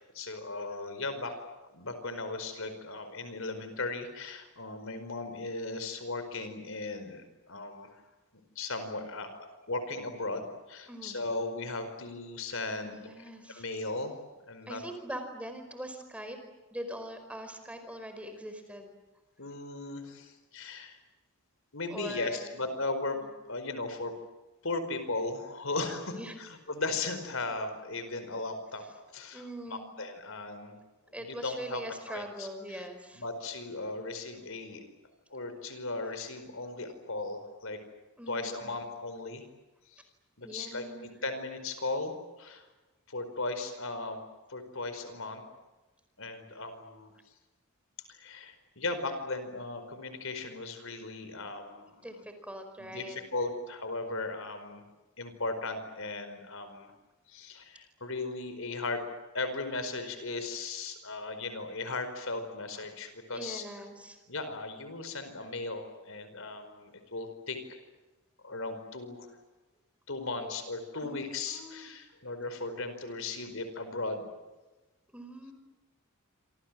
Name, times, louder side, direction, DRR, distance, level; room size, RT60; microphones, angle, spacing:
voice 1, 0.1-1.3 1.7-7.9 8.5-13.0 13.5-14.2 14.5-14.8 19.4-21.0 21.7-23.2 23.5-24.1 24.6-28.8 29.1-29.4 29.7-30.8 31.2-31.8 32.1-32.9 33.1-34.8 35.3-37.8 38.3-39.4 39.9-40.0 40.4-40.8 41.2-42.7 43.1-44.2 44.5-45.4 46.2-47.1 48.1-52.1 52.8-54.8 55.2-56.9 57.3-59.0 59.3-63.6 64.3-67.8 68.4-69.3 70.1-74.2, left 3 dB, 65° left, 9 dB, 4.8 m, -37 dB
voice 2, 10.9-11.2 12.8-13.6 14.7-16.4 16.7-18.9 21.9-22.6 23.2-23.3 26.1-26.3 29.3-29.9 31.1-33.2 38.2-38.7 40.4-41.2 52.0-53.2 63.3-64.2 70.4-70.5 71.0-71.2 71.5-71.9 75.1-75.5, equal, 5° right, 7 dB, 4.8 m, -42 dB
28.0 x 26.5 x 7.6 m, 1.1 s
head